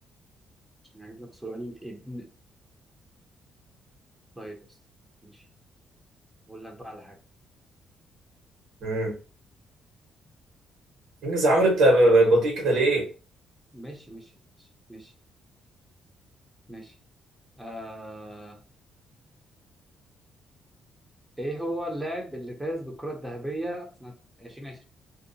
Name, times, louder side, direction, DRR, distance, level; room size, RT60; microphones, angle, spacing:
voice 1, 0.9-2.3 4.4-4.6 5.2-5.4 6.5-7.2 11.5-11.6 13.7-14.3 14.6-15.1 16.7-17.0 17.6-18.6 21.4-24.1 24.4-24.8, right 1 dB, 5° right, 1 dB, 0.6 m, -37 dB
voice 2, 8.8-9.1 11.2-13.1, right 1 dB, 85° right, 0 dB, 1.3 m, -20 dB
2.7 x 2.0 x 2.6 m, 0.35 s
cardioid pair, 90°, 0 cm